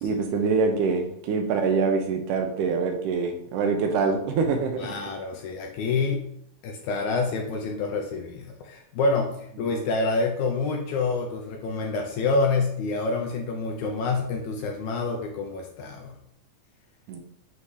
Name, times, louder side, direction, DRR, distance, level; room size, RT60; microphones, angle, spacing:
voice 1, 0.0-4.9 17.1-17.2, right 4 dB, 80° right, 5 dB, 2.2 m, -25 dB
voice 2, 4.8-6.3 6.6-16.2, left 3 dB, 80° left, 2 dB, 1.9 m, -27 dB
7.2 x 2.8 x 4.8 m, 0.72 s
omnidirectional pair, 3.7 m